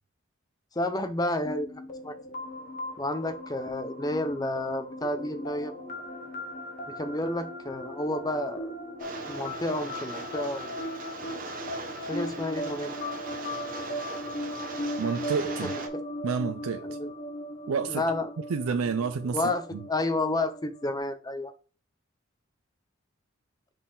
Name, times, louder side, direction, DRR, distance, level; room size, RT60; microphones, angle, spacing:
voice 1, 0.8-2.1 3.0-5.7 6.9-8.7 9.3-10.7 12.0-13.0 15.6-15.7 16.8-17.1 17.9-18.3 19.3-21.5, left 1 dB, 20° left, 0.6 m, -30 dB
sound 1, 1.4-21.0, left 1 dB, 40° left, 1.1 m, -38 dB
Rain, 9.0-15.9, right 4 dB, 40° right, 1.0 m, -40 dB
voice 2, 15.0-15.7 16.2-16.9 17.7-18.0 18.5-19.4 19.7-19.8, right 5 dB, 85° right, 0.4 m, -29 dB
6.2 x 4.1 x 3.8 m
head